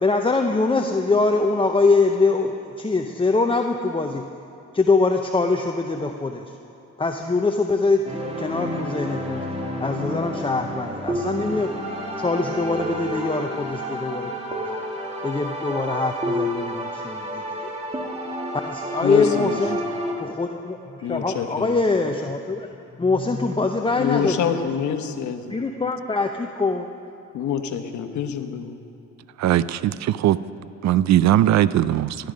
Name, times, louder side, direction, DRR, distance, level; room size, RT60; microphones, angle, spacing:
voice 1, 0.0-4.2 4.7-6.6 7.0-9.4 9.8-11.7 12.2-14.7 15.2-17.4 18.6-19.8 20.2-22.7 22.9-24.7 25.5-26.9, left 3 dB, 15° left, 4 dB, 0.7 m, -23 dB
sound 1, 8.0-20.1, equal, 20° right, 2.1 m, -30 dB
voice 2, 19.0-19.6 21.0-21.7 24.0-25.5 27.3-28.7, left 8 dB, 70° left, 7 dB, 1.1 m, -26 dB
voice 3, 29.4-30.4 30.8-32.2, right 12 dB, 65° right, 17 dB, 0.5 m, -19 dB
16.5 x 11.5 x 5.2 m, 2.8 s
cardioid pair, 90°, 30 cm